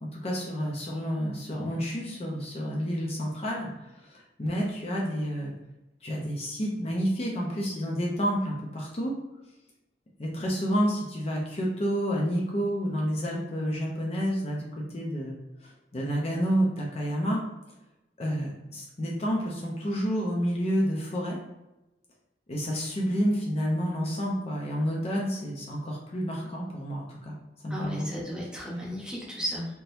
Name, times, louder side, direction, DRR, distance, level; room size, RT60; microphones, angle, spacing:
voice 1, 0.0-3.7 3.9-5.5 6.0-9.1 10.2-15.3 15.6-17.4 18.2-21.4 22.5-27.3 27.6-28.1, equal, 35° left, -2 dB, 0.6 m, -29 dB
voice 2, 27.7-29.7, equal, 5° right, -5 dB, 0.9 m, -34 dB
3.7 x 2.8 x 2.6 m, 0.97 s
head